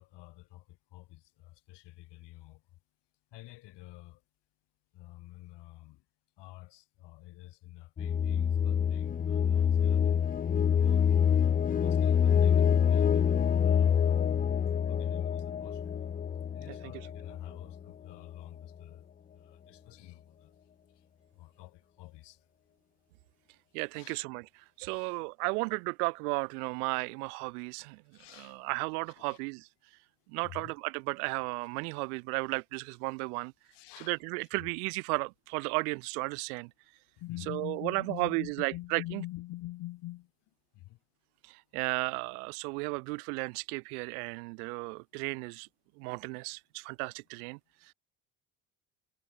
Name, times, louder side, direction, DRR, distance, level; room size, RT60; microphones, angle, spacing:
voice 1, 0.0-2.6 3.3-4.2 4.9-6.0 6.4-10.1 10.7-11.1 11.8-14.3 14.9-16.1 16.5-19.1 19.3-20.5 21.3-22.4 23.9-24.2 24.8-25.2 28.1-28.7 29.2-29.4 30.4-30.7 33.7-34.2 34.6-34.7 37.2-40.3 40.7-41.0, left 18 dB, 70° left, 3.8 m, -47 dB
sound 1, 8.0-17.8, left 8 dB, 20° left, 0.4 m, -26 dB
voice 2, 16.7-17.1 23.7-24.5 24.8-28.0 28.3-29.7 30.3-33.5 34.0-36.7 37.5-39.2 41.4-45.7 46.0-47.6, right 31 dB, 85° right, 0.8 m, -34 dB
supercardioid pair, 70°, 44 cm